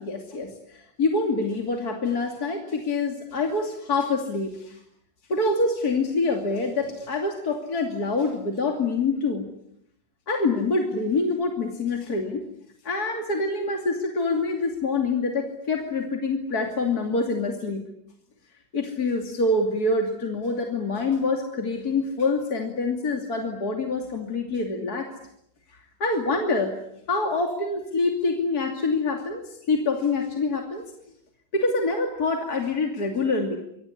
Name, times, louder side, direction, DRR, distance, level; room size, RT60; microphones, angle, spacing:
voice 1, 0.0-4.8 5.3-9.4 10.3-12.4 12.8-17.8 18.7-25.1 25.7-26.7 27.1-30.8 31.5-33.6, left 3 dB, 60° left, 3 dB, 3.3 m, -26 dB
26.0 x 23.5 x 9.7 m, 0.76 s
omnidirectional pair, 1.8 m